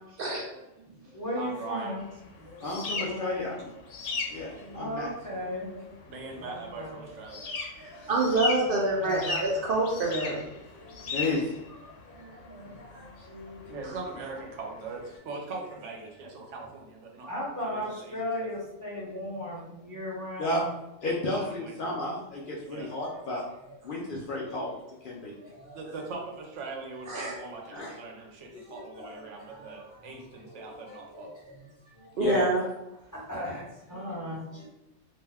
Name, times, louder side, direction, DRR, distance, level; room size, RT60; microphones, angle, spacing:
voice 1, 0.5-2.1 2.4-3.8 4.0-6.0 6.2-8.2 8.6-9.4 10.5-11.4 12.0-13.8 14.1-14.2 17.3-20.7 21.4-21.5 22.7-23.2 23.6-23.7 25.0-25.8 28.5-32.2 33.1-34.7, left 1 dB, 20° left, -7 dB, 0.7 m, -39 dB
voice 2, 1.3-2.0 6.1-7.4 13.7-17.3 17.6-18.2 21.2-22.0 22.7-22.9 25.7-31.3, right 3 dB, 80° right, 0 dB, 1.0 m, -40 dB
sound 1, 2.0-15.2, left 3 dB, 85° left, 1.0 m, -38 dB
voice 3, 2.6-3.6 4.3-5.1 7.9-8.1 11.1-11.5 20.4-20.6 21.0-23.4 23.8-24.7 25.0-25.3 27.7-27.9 32.2-32.4, left 2 dB, 60° left, -3 dB, 0.6 m, -32 dB
voice 4, 7.8-10.4 13.8-13.9 27.1-27.3 32.2-32.6, right 2 dB, 60° right, -2 dB, 0.6 m, -26 dB
2.6 x 2.1 x 3.3 m, 0.90 s
omnidirectional pair, 1.2 m